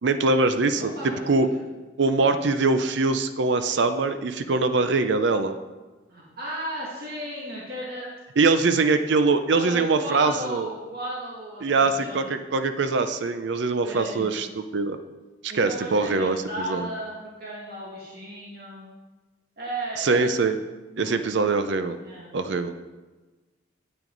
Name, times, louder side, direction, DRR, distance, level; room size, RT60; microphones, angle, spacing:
voice 1, 0.0-0.9 1.3-1.5 2.0-5.6 8.4-10.7 11.6-15.0 15.4-16.9 20.0-20.6 21.0-22.0 22.3-22.7, right 3 dB, 70° right, 9 dB, 0.5 m, -23 dB
voice 2, 0.8-1.6 6.1-8.1 9.5-12.4 13.8-14.3 15.5-18.8 19.6-20.4 20.9-21.5 22.0-22.3, right 1 dB, 50° right, -6 dB, 2.1 m, -35 dB
9.1 x 8.8 x 3.9 m, 1.2 s
head